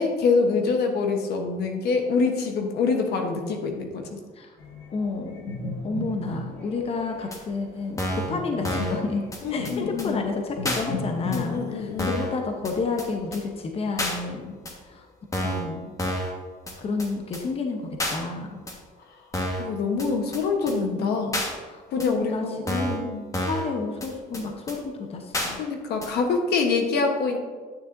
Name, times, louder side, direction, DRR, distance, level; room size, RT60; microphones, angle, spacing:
voice 1, 0.0-4.2 9.4-10.2 11.3-12.2 19.6-21.4 21.9-23.2 25.5-27.4, left 4 dB, 75° left, 3 dB, 1.1 m, -25 dB
sound 1, 4.6-11.5, left 2 dB, 90° left, 1.8 m, -36 dB
voice 2, 4.9-5.5 5.8-9.2 9.5-14.6 14.8-15.1 15.4-15.9 16.8-18.6 21.0-21.4 21.7-23.1 23.4-25.6, left 4 dB, 35° left, 3 dB, 0.9 m, -30 dB
sound 2, 7.3-7.4 8.0-8.3 8.6-9.0 9.3-9.4 9.6-9.7 10.0-10.1 10.6-10.8 11.3-11.4 12.0-12.3 12.6-12.7 13.0-13.1 13.3-13.4 14.0-14.2 14.7-14.8 15.3-15.7 16.0-16.3 16.7-16.8 17.0-17.1 17.3-17.4 18.0-18.2 18.7-18.8 19.3-19.7 20.0-20.1 20.3-20.4 20.7-20.8 21.3-21.5 22.0-22.1 22.7-23.0 23.3-23.7 24.0-24.1 24.3-24.4 24.7-24.8 25.3-25.5 26.0-26.1, equal, 20° left, 1.4 m, -28 dB
9.4 x 6.6 x 2.6 m, 1.5 s
cardioid pair, 110°, 17 cm